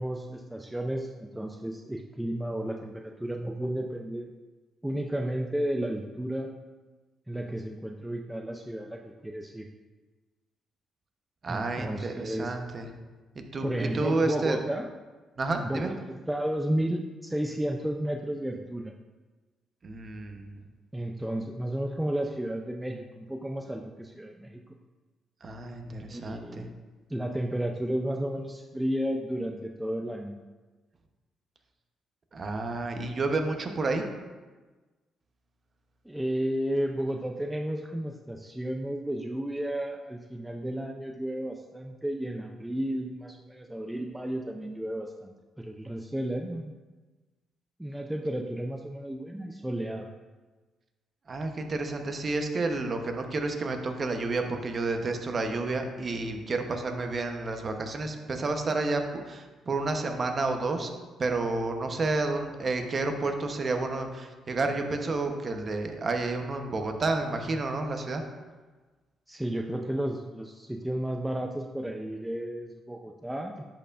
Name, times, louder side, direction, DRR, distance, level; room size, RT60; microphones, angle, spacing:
voice 1, 0.0-4.3 4.8-6.5 7.3-9.7 11.5-12.5 13.6-14.9 15.6-18.9 20.9-24.6 26.0-26.7 27.1-30.4 36.1-46.7 47.8-50.1 69.3-73.7, right 1 dB, 5° right, 2 dB, 0.4 m, -33 dB
voice 2, 11.4-12.9 13.3-14.6 15.4-15.9 19.8-20.6 25.4-26.7 32.3-34.0 51.3-60.9 61.2-68.2, right 3 dB, 40° right, 5 dB, 0.8 m, -30 dB
10.5 x 4.5 x 2.5 m, 1.3 s
cardioid pair, 90°, 0 cm